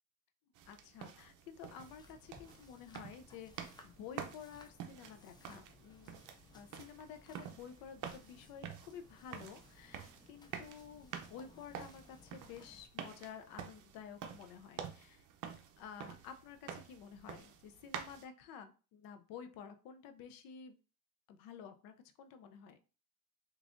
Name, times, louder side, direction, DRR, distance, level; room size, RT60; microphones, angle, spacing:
sound 1, 0.5-18.2, right 8 dB, 65° right, 0.6 m, -49 dB
voice 1, 0.7-6.2 6.5-15.3 15.8-20.8 21.3-22.8, left 7 dB, 80° left, 8 dB, 0.6 m, -52 dB
sound 2, 1.8-12.9, left 3 dB, 15° left, 0.3 m, -62 dB
3.6 x 3.1 x 2.5 m, 0.35 s
cardioid pair, 135°, 34 cm